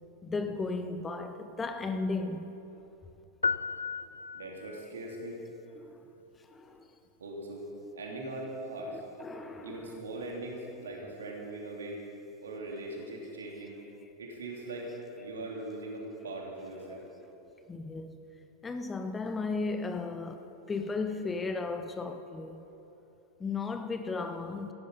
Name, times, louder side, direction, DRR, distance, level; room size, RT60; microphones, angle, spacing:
voice 1, 0.2-2.5 5.8-5.9 6.5-6.9 8.8-10.0 17.7-18.1 18.6-22.6 23.4-24.7, left 3 dB, 15° left, 0.7 m, -35 dB
sound 1, 3.4-4.9, left 4 dB, 75° left, 0.4 m, -33 dB
voice 2, 4.3-5.4 7.2-7.6 7.9-9.0 9.6-12.0 12.4-13.7 14.2-17.0, right 2 dB, 65° right, 3.0 m, -40 dB
16.0 x 11.5 x 5.4 m
figure-of-eight pair, 90°, 0 cm